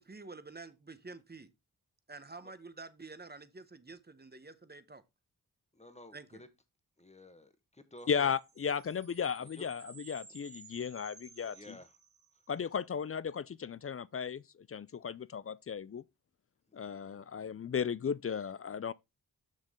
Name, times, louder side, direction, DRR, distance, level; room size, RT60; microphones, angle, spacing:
voice 1, 0.0-1.5 2.1-5.0 6.1-6.4, right 3 dB, 25° right, 1.0 m, -49 dB
voice 2, 5.7-6.5 7.0-8.1 9.4-9.6 11.5-11.9 16.8-17.0, left 1 dB, 15° left, 1.3 m, -53 dB
sound 1, 8.0-12.6, right 4 dB, 55° right, 3.4 m, -56 dB
voice 3, 8.1-11.8 12.5-14.4 14.7-16.0 16.7-18.9, left 7 dB, 35° left, 0.4 m, -35 dB
6.4 x 6.2 x 3.6 m
cardioid pair, 55°, 40 cm